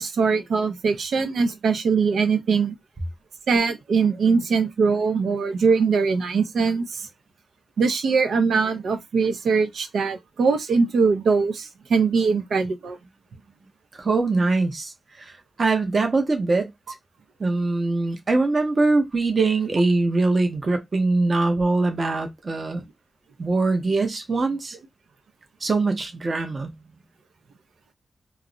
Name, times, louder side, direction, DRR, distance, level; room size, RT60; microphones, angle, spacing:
voice 1, 0.0-2.7 3.5-7.1 7.8-13.0, right 5 dB, 80° right, 0.5 m, -22 dB
voice 2, 14.0-14.9 15.2-15.3 15.6-16.7 17.4-22.8 23.4-24.8 25.6-26.7, right 3 dB, 35° right, 0.7 m, -22 dB
2.3 x 2.0 x 3.7 m
wide cardioid pair, 155°, 0 cm